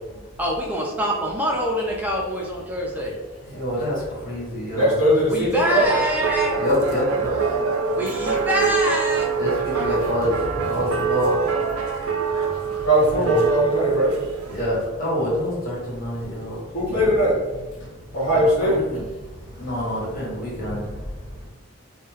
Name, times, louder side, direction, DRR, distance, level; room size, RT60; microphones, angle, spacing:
voice 1, 0.4-3.1 5.3-6.5 8.0-9.3 9.7-10.0, equal, 5° right, -2 dB, 0.4 m, -25 dB
voice 2, 3.5-4.9 6.6-7.3 9.4-11.4 13.1-13.4 14.5-16.6 18.6-19.0 19.6-20.9, equal, 40° left, -7 dB, 0.9 m, -26 dB
voice 3, 4.7-5.9 12.8-14.1 16.7-17.4 18.1-18.8, equal, 90° left, -9 dB, 1.0 m, -19 dB
sound 1, 5.7-14.8, right 5 dB, 80° right, 0.4 m, -25 dB
2.3 x 2.1 x 3.1 m, 1.2 s
head